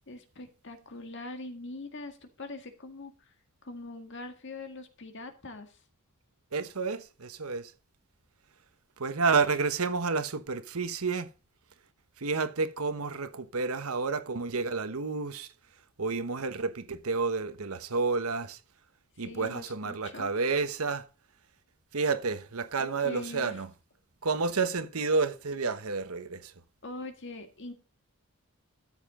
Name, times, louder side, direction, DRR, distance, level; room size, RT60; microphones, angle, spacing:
voice 1, 0.1-3.3 3.6-5.8 19.2-20.3 22.8-23.6 26.8-27.7, left 2 dB, 55° left, 1.8 m, -43 dB
voice 2, 6.5-7.7 9.0-11.3 12.2-15.5 16.0-18.6 19.2-21.1 21.9-23.7 24.2-26.5, right 4 dB, 80° right, 1.1 m, -30 dB
13.0 x 7.4 x 3.8 m
head